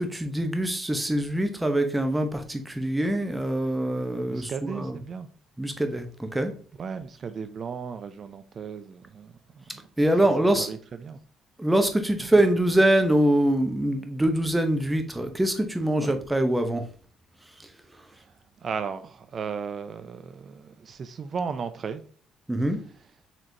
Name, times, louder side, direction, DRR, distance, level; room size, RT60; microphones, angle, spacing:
voice 1, 0.0-5.0 5.6-6.5 10.0-10.7 11.6-16.9 17.6-17.7 22.5-22.8, right 1 dB, 10° right, 0.7 m, -24 dB
voice 2, 4.3-5.3 6.8-9.8 10.6-11.2 16.0-16.1 18.2-18.3 18.6-22.0, right 6 dB, 50° right, 0.4 m, -35 dB
4.1 x 3.0 x 2.7 m
supercardioid pair, 75°, 0 cm